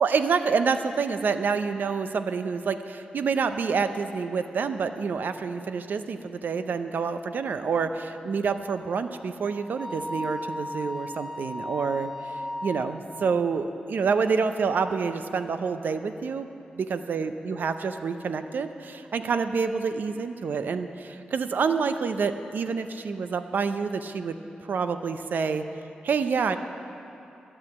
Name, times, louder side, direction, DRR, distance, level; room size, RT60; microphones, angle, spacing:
voice 1, 0.0-16.5 16.7-24.4 24.7-25.6 26.0-26.6, right 5 dB, 75° right, 9 dB, 0.6 m, -27 dB
Wind instrument woodwind instrument, 8.8-13.1, left 1 dB, 5° right, 1.8 m, -36 dB
11.0 x 9.0 x 7.8 m, 2.9 s
cardioid pair, 70°, 3 cm